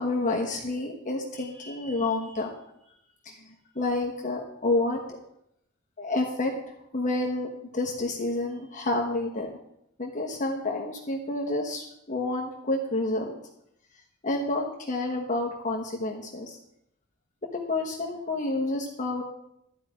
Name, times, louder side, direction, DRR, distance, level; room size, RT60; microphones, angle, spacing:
voice 1, 0.0-2.5 3.2-3.5 3.7-5.2 6.0-6.5 6.9-7.5 7.7-9.5 10.0-13.3 14.2-16.6 17.5-19.2, left 2 dB, 35° left, 0 dB, 1.2 m, -29 dB
12.5 x 5.1 x 8.5 m, 0.78 s
head